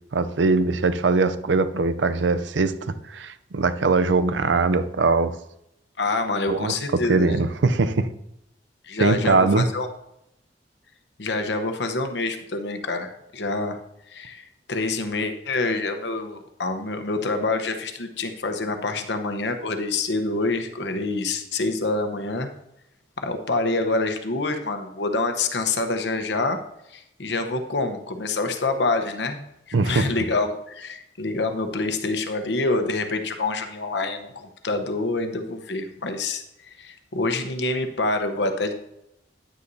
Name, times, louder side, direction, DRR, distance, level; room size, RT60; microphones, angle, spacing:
voice 1, 0.1-5.3 6.5-8.1 9.0-9.7 29.7-30.1, right 3 dB, 85° right, 12 dB, 0.6 m, -21 dB
voice 2, 6.0-7.4 8.8-9.9 11.2-13.8 14.1-22.5 23.2-26.6 26.9-29.4 29.7-36.4 36.8-38.7, left 3 dB, 70° left, 7 dB, 1.0 m, -26 dB
10.0 x 9.6 x 2.7 m, 0.83 s
head